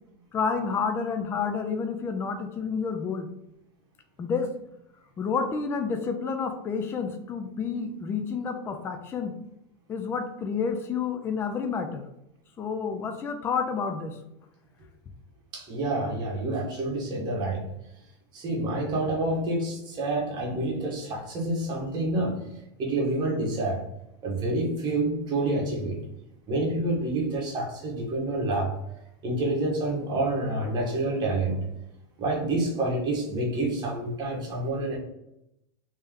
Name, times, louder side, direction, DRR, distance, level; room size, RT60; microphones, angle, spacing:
voice 1, 0.3-3.3 4.2-4.5 5.2-9.4 9.9-12.0 12.6-14.2, left 5 dB, 15° left, 6 dB, 0.3 m, -29 dB
voice 2, 15.5-17.7 18.3-22.4 22.8-23.8 24.2-26.0 26.5-28.7 29.2-31.6 32.2-35.0, right 2 dB, 30° right, -2 dB, 1.3 m, -28 dB
3.2 x 2.9 x 3.6 m, 0.83 s
supercardioid pair, 145°, 15 cm